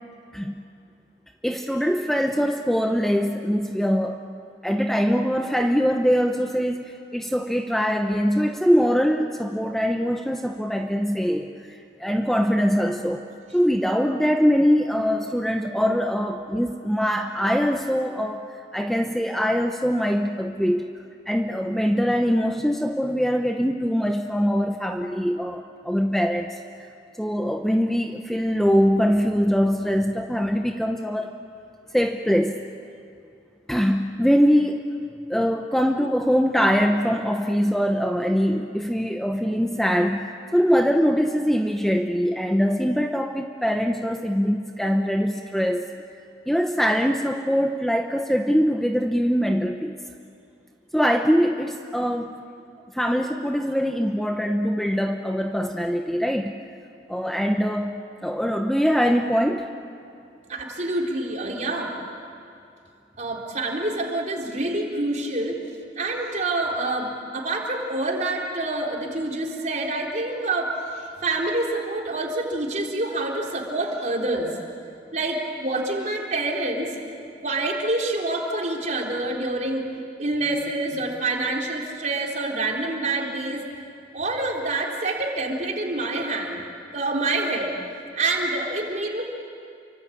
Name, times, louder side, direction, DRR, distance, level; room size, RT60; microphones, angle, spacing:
voice 1, 1.4-4.2 4.6-13.2 13.5-18.4 18.7-20.9 21.3-26.6 27.2-31.3 31.9-32.6 33.7-34.8 35.3-45.9 46.5-50.0 50.9-52.4 52.9-56.5 57.1-59.7, equal, ahead, 4 dB, 0.8 m, -23 dB
voice 2, 60.5-61.9 63.2-65.6 66.0-74.5 75.1-76.9 77.4-79.9 80.2-83.6 84.1-86.6 86.9-87.7 88.1-89.2, right 2 dB, 40° right, 0 dB, 3.8 m, -27 dB
28.5 x 24.5 x 8.6 m, 2.5 s
head